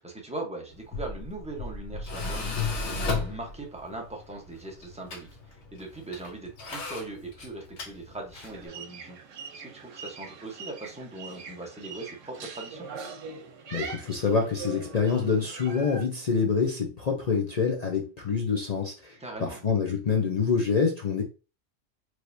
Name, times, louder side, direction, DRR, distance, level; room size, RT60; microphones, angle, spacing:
voice 1, 0.0-9.2 9.5-12.9 19.2-19.6, right 2 dB, 5° right, 1 dB, 0.9 m, -40 dB
Tools, 0.7-8.7, left 4 dB, 70° left, 1.2 m, -35 dB
sound 1, 8.5-16.0, right 5 dB, 90° right, 1.1 m, -42 dB
voice 2, 13.7-21.2, left 5 dB, 45° left, 0 dB, 0.6 m, -26 dB
4.6 x 3.2 x 2.6 m, 0.32 s
omnidirectional pair, 1.3 m